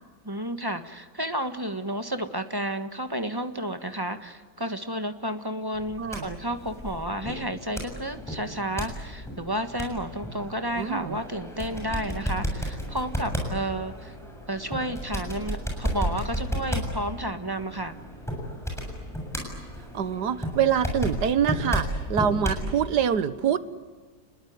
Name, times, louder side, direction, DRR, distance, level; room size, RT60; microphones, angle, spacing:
voice 1, 0.2-14.1 14.5-18.0, right 1 dB, 15° right, 8 dB, 1.4 m, -31 dB
sound 1, 5.7-22.7, equal, ahead, 7.0 m, -33 dB
voice 2, 10.8-11.2 19.9-23.6, right 8 dB, 75° right, 13 dB, 1.7 m, -25 dB
29.5 x 21.0 x 9.5 m, 1.5 s
omnidirectional pair, 1.8 m